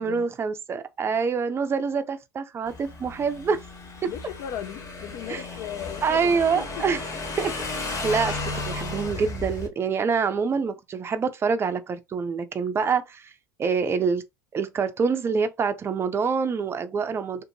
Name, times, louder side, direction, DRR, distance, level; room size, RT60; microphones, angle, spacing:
voice 1, 0.0-3.6 4.0-4.1 5.3-5.4 6.0-7.0 7.4-7.5 7.8-8.4 8.6-13.3 13.6-14.2 14.5-17.4, right 5 dB, 25° right, 0.5 m, -26 dB
Motorcycle / Engine, 2.7-9.7, left 3 dB, 35° left, 1.3 m, -34 dB
voice 2, 4.0-6.9, left 9 dB, 55° left, 0.6 m, -37 dB
2.5 x 2.5 x 2.7 m
hypercardioid pair, 75°, 10 cm